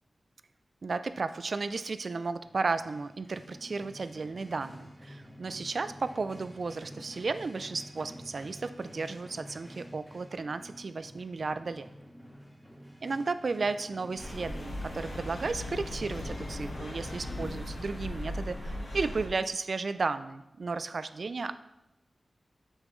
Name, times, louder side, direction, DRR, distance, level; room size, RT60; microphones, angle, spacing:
voice 1, 0.8-11.9 13.0-21.5, right 4 dB, 65° right, 12 dB, 0.4 m, -34 dB
sound 1, 2.4-15.5, equal, 10° left, 1.4 m, -50 dB
sound 2, 14.2-19.3, left 1 dB, 80° left, 1.4 m, -38 dB
7.3 x 6.5 x 3.1 m, 0.88 s
wide cardioid pair, 80°, 0 cm